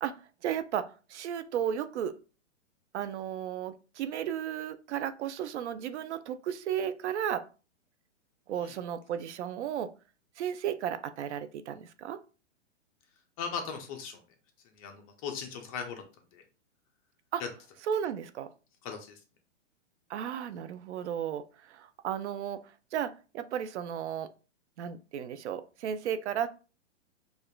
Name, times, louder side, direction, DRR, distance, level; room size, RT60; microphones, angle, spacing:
voice 1, 0.0-2.1 2.9-7.5 8.5-9.9 10.4-12.2 17.3-17.4 17.9-18.5 20.1-22.6 22.9-24.3 24.8-26.5, right 9 dB, 65° right, 12 dB, 0.5 m, -34 dB
voice 2, 13.4-14.2 14.8-16.0 16.3-16.4 17.4-17.5 18.8-19.2, left 6 dB, 30° left, 4 dB, 0.5 m, -38 dB
4.9 x 2.4 x 2.2 m, 0.35 s
hypercardioid pair, 140°, 37 cm